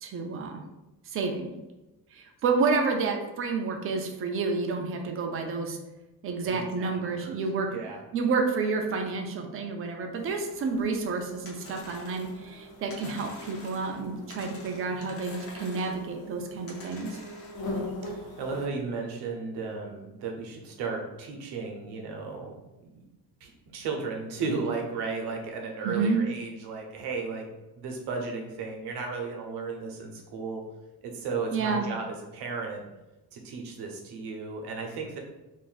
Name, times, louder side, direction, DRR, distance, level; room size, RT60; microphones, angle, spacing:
voice 1, 0.0-0.6 1.1-1.5 2.1-5.8 6.2-7.7 8.1-17.2 25.8-26.2 31.5-31.9, right 4 dB, 35° right, 3 dB, 0.4 m, -29 dB
voice 2, 6.5-7.4 7.7-8.0 18.1-22.5 22.9-23.0 23.4-27.5 27.8-30.6 31.0-32.0 32.3-32.9 33.3-35.2, right 4 dB, 85° right, 1 dB, 0.8 m, -34 dB
sound 1, 10.2-18.7, left 1 dB, 70° left, 0.8 m, -42 dB
sound 2, 11.4-12.4 12.9-14.0 14.3-16.0 16.7-17.6, left 2 dB, 35° left, 0.7 m, -47 dB
2.6 x 2.5 x 3.9 m, 1.0 s
cardioid pair, 170°, 39 cm